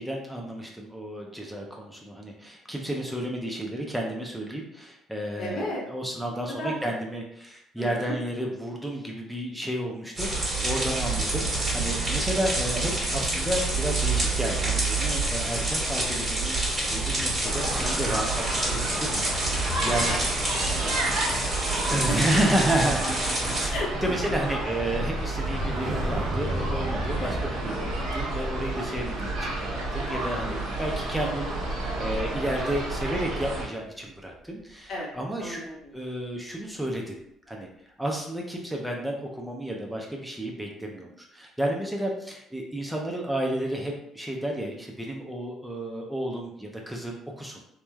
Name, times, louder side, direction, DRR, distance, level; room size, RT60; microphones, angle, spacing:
voice 1, 0.0-20.4 21.9-23.0 23.5-35.6 35.9-37.2 37.5-37.7 38.0-47.6, right 1 dB, 5° right, 0 dB, 0.4 m, -31 dB
voice 2, 5.4-5.8 6.6-6.8 7.8-8.2 20.1-20.2 20.5-22.2 22.8-22.9 23.7-23.9 27.1-27.4 30.5-30.6 34.9-35.1 35.4-35.9, left 1 dB, 60° left, -2 dB, 0.8 m, -35 dB
sound 1, 10.2-23.7, right 2 dB, 25° right, 1.4 m, -27 dB
sound 2, 17.4-33.7, right 2 dB, 85° right, 0.9 m, -31 dB
sound 3, 22.5-32.6 32.9-33.3, right 1 dB, 60° right, 0.6 m, -35 dB
3.0 x 2.1 x 2.2 m, 0.75 s
cardioid pair, 100°, 0 cm